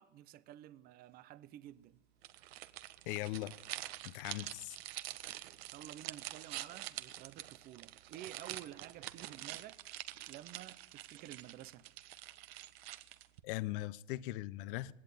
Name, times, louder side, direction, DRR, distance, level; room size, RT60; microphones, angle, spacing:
voice 1, 0.0-2.0 5.7-9.8 10.3-11.9, right 13 dB, 25° right, 0.7 m, -52 dB
sound 1, 2.2-13.4, right 15 dB, 55° right, 1.4 m, -47 dB
voice 2, 3.1-3.6 4.0-4.8 13.4-14.9, left 17 dB, 50° left, 0.9 m, -39 dB
19.5 x 17.0 x 9.4 m
hypercardioid pair, 125°, 35 cm